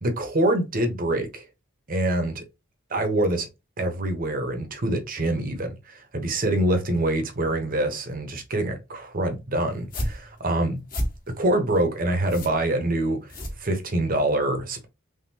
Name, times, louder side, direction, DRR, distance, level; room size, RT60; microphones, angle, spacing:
voice 1, 0.0-1.5 1.9-2.4 2.9-3.5 3.8-10.8 11.4-13.2 13.6-14.9, right 1 dB, 40° right, 0.9 m, -25 dB
sound 1, 9.7-14.2, equal, 40° left, 1.4 m, -33 dB
3.7 x 3.3 x 2.8 m
head